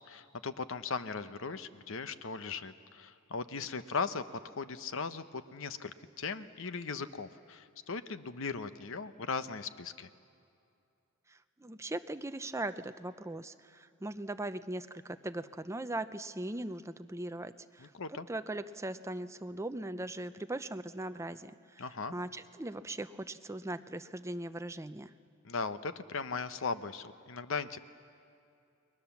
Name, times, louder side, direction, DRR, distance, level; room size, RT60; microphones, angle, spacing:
voice 1, 0.0-4.2 4.6-10.1 17.8-18.3 21.8-22.1 25.4-27.8, left 4 dB, 65° left, 12 dB, 0.9 m, -38 dB
voice 2, 11.3-21.9 22.1-25.1, right 1 dB, 15° right, 10 dB, 0.6 m, -40 dB
30.0 x 21.5 x 7.2 m, 2.5 s
head